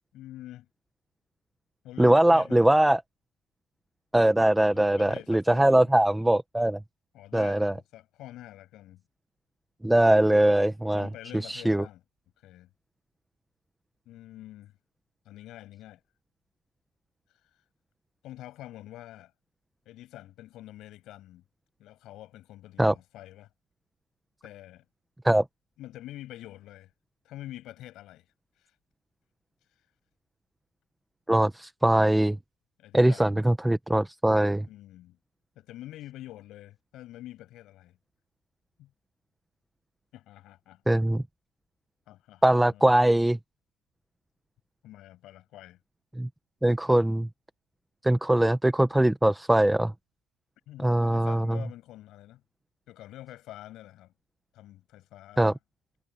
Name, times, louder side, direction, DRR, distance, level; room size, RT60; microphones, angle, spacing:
voice 1, 0.1-0.7 1.8-2.8 4.7-6.0 7.1-9.0 10.9-12.0 12.4-12.7 14.1-14.7 15.3-16.0 18.2-19.3 19.9-21.4 21.8-23.5 24.4-24.8 25.8-26.9 27.2-28.3 28.6-28.7 32.8-33.4 34.7-35.2 35.6-38.0 38.8-38.9 40.1-40.9 42.1-42.9 44.8-45.8 50.7-52.4 52.9-54.1 54.5-55.6, left 14 dB, 70° left, 7.3 m, -46 dB
voice 2, 2.0-3.0 4.1-6.8 7.3-7.7 9.8-11.1 11.4-11.8 22.8-22.9 25.2-25.4 31.3-32.4 32.9-34.7 40.9-41.2 42.4-43.4 46.2-46.3 46.6-47.3 48.0-49.9 50.8-51.6 55.4-55.5, right 1 dB, 5° right, 1.1 m, -22 dB
cardioid pair, 125°, 0 cm